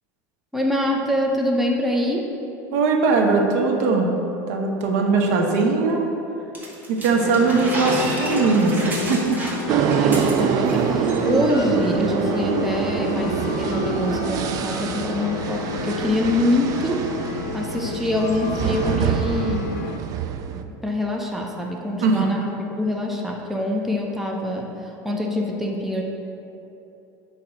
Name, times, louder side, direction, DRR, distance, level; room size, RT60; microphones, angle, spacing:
voice 1, 0.5-2.3 9.7-17.1 17.5-19.8 20.5-26.0, left 1 dB, 5° right, -1 dB, 0.7 m, -25 dB
voice 2, 2.7-4.1 4.5-6.0 6.9-9.4 22.0-22.3, right 4 dB, 75° right, 1 dB, 1.0 m, -20 dB
sound 1, 6.5-10.8 11.0-11.2 11.5-11.9, right 2 dB, 20° right, 1.2 m, -30 dB
sound 2, 7.1-20.0, left 5 dB, 80° left, 0.5 m, -31 dB
sound 3, 9.7-20.6, right 7 dB, 45° right, 0.4 m, -25 dB
8.5 x 2.9 x 6.2 m, 2.9 s
supercardioid pair, 125°, 9 cm